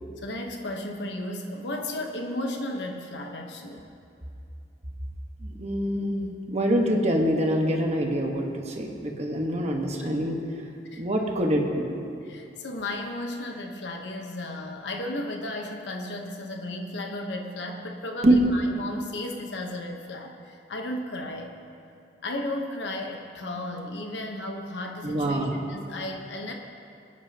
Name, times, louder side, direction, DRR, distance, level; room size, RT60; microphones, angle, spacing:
voice 1, 0.2-3.8 10.0-10.3 10.8-11.0 11.5-11.6 12.2-21.5 22.2-26.5, left 1 dB, 75° left, 2 dB, 1.0 m, -34 dB
voice 2, 5.4-10.4 11.0-11.8 18.2-18.4 25.0-25.6, right 1 dB, 40° right, 1 dB, 1.3 m, -25 dB
23.0 x 9.6 x 2.9 m, 2.6 s
head